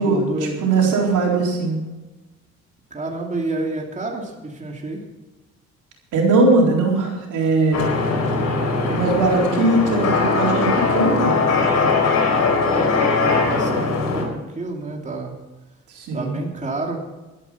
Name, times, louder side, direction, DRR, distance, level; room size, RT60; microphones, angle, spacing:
voice 1, 0.0-1.0 2.9-5.0 12.7-15.3 16.1-17.0, right 2 dB, 25° right, 0 dB, 2.8 m, -29 dB
voice 2, 0.6-1.8 6.1-7.9 8.9-11.4 15.9-16.4, right 3 dB, 85° right, -1 dB, 4.2 m, -19 dB
sound 1, 7.7-14.2, left 4 dB, 60° left, 4.6 m, -20 dB
12.5 x 11.0 x 5.9 m, 1.1 s
cardioid pair, 90°, 30 cm